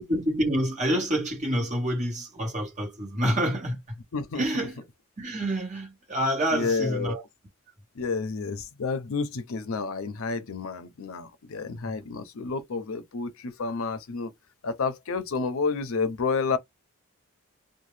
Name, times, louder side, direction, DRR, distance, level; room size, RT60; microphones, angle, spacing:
voice 1, 0.0-4.0 4.3-4.8 5.2-7.2 11.8-12.1, equal, 30° right, 1.3 m, -28 dB
voice 2, 4.1-4.4 6.5-7.2 8.0-14.3 14.6-16.6, left 4 dB, 70° left, 0.5 m, -30 dB
2.7 x 2.2 x 3.2 m
head